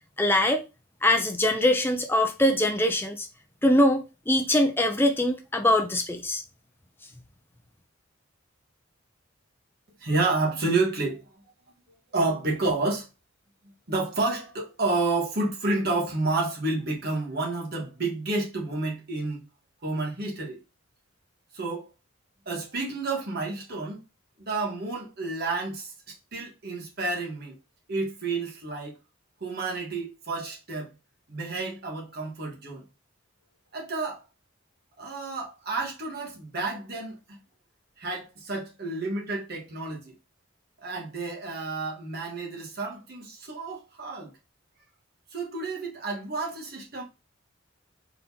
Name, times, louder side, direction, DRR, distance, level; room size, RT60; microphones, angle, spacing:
voice 1, 0.2-0.7 1.0-3.3 3.6-6.4, left 1 dB, 10° left, 0.5 m, -23 dB
voice 2, 10.0-11.2 12.1-13.1 13.9-19.4 19.8-20.6 21.5-21.9 22.4-24.0 24.5-27.5 27.9-29.0 29.4-30.9 31.3-32.8 33.7-34.2 35.0-37.4 38.0-40.1 40.8-44.3 45.3-47.0, right 3 dB, 45° right, 1.4 m, -30 dB
4.0 x 4.0 x 2.8 m
head